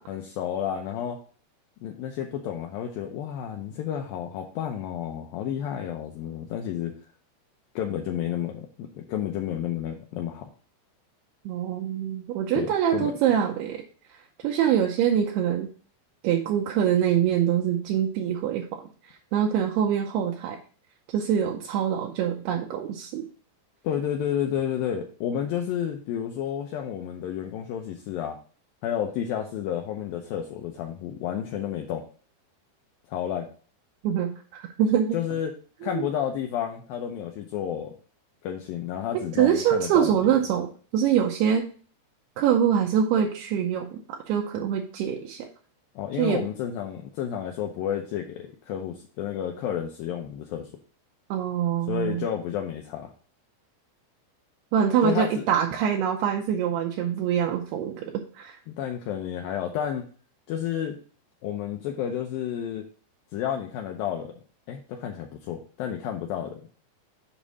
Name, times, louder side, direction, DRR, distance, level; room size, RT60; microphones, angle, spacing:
voice 1, 0.1-1.2 1.8-7.0 7.8-10.5 12.5-13.1 23.8-28.4 28.8-32.0 33.1-33.5 35.1-35.5 35.8-37.9 38.4-40.3 46.0-50.7 51.9-53.1 55.0-55.5 58.7-60.1 60.5-61.0 61.4-62.8 63.3-64.3 64.7-66.6, left 9 dB, 80° left, 3 dB, 2.1 m, -31 dB
voice 2, 11.5-13.8 14.1-14.2 14.4-15.7 16.2-20.6 21.1-23.2 34.0-35.2 35.8-36.0 39.4-41.7 42.4-45.5 46.2-46.4 51.3-52.3 54.7-58.6, right 9 dB, 80° right, 2 dB, 2.5 m, -24 dB
7.3 x 5.3 x 4.1 m, 0.41 s
omnidirectional pair, 4.9 m